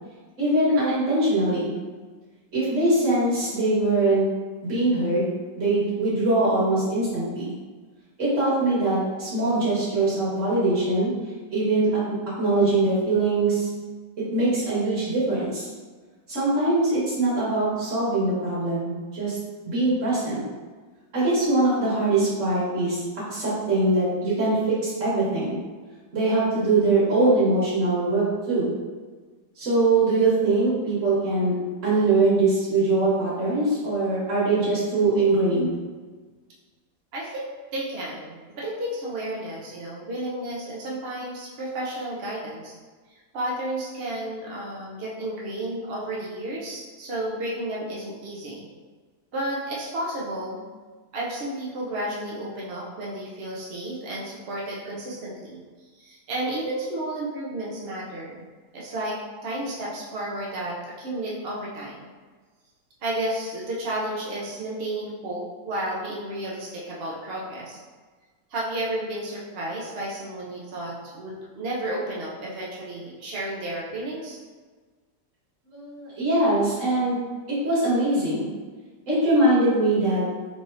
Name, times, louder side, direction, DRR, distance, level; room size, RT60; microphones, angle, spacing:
voice 1, 0.4-1.7 2.5-4.2 4.6-5.3 5.5-7.5 8.2-11.1 11.5-12.0 12.4-13.7 14.3-15.7 16.3-19.4 19.7-20.4 21.1-23.0 23.3-24.6 24.8-25.6 26.1-28.7 29.6-31.5 31.8-35.7 75.7-77.2 77.6-78.5 79.1-80.2, right 2 dB, 40° right, -9 dB, 1.9 m, -22 dB
voice 2, 37.1-42.7 43.3-48.7 49.3-50.6 51.1-55.6 55.9-58.4 58.7-59.1 59.4-62.1 63.0-67.8 68.5-74.4, right 1 dB, 65° right, -5 dB, 0.5 m, -32 dB
4.9 x 3.2 x 2.7 m, 1.4 s
omnidirectional pair, 2.1 m